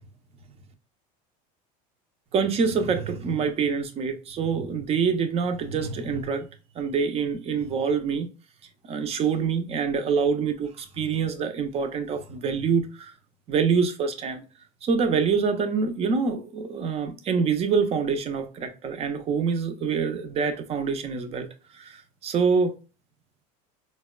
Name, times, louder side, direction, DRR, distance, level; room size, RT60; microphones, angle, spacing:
voice 1, 2.3-6.5 6.8-8.3 8.8-13.1 13.5-14.4 14.8-21.5 21.7-22.7, right 5 dB, 30° right, 0.5 m, -26 dB
4.1 x 2.1 x 2.2 m
supercardioid pair, 130°, 20 cm